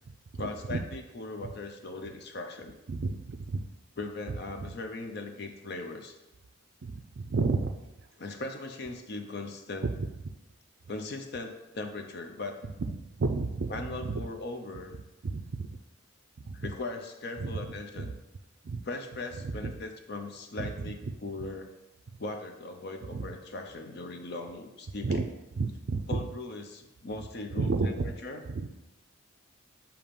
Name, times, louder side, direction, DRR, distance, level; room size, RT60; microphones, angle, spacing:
voice 1, 0.3-2.8 4.0-6.2 8.2-9.9 10.9-12.6 13.7-15.0 16.5-18.2 18.8-21.7 22.2-25.3 26.1-28.4, left 2 dB, 50° left, 5 dB, 0.6 m, -39 dB
voice 2, 2.9-3.6 4.6-4.7 6.8-7.8 9.8-9.9 13.2-13.7 14.1-14.2 15.2-15.7 16.4-16.7 17.4-17.7 18.0-18.1 18.6-18.8 19.4-19.7 20.6-20.7 21.1-21.2 23.1-23.2 25.0-25.3 25.6-26.2 27.6-28.1 28.5-28.7, right 3 dB, 55° right, 7 dB, 0.4 m, -31 dB
7.0 x 2.9 x 5.1 m, 0.98 s
head